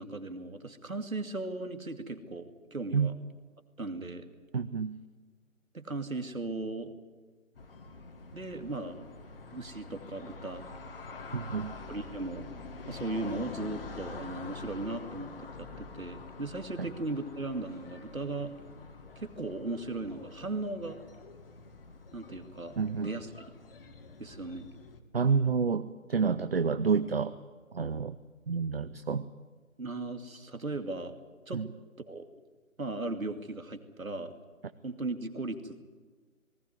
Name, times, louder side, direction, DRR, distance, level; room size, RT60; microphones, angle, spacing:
voice 1, 0.0-3.1 3.8-4.2 5.7-6.9 8.3-9.1 9.5-10.6 11.9-12.5 12.9-15.3 15.6-18.5 19.2-21.0 22.1-23.3 24.2-24.7 29.8-31.1 31.5-31.6 32.0-32.3 32.8-34.3 34.8-35.8, right 2 dB, 80° right, 7 dB, 2.5 m, -37 dB
voice 2, 4.5-5.0 11.3-11.7 16.8-16.9 22.8-23.2 25.1-27.4 27.7-28.2 28.5-29.3 31.5-31.7, right 5 dB, 45° right, 12 dB, 0.7 m, -29 dB
sound 1, 7.5-25.0, left 4 dB, 45° left, 1.9 m, -46 dB
19.5 x 17.0 x 9.5 m, 1.4 s
figure-of-eight pair, 155°, 41 cm